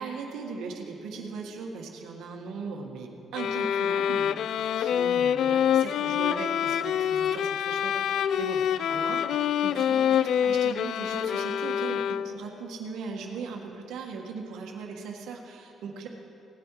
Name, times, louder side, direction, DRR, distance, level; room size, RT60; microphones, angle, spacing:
voice 1, 0.0-8.6 8.9-16.1, right 4 dB, 85° right, 2 dB, 1.6 m, -38 dB
sound 1, 3.3-12.6, left 9 dB, 70° left, 0.3 m, -26 dB
17.5 x 9.6 x 4.9 m, 2.9 s
cardioid pair, 90°, 0 cm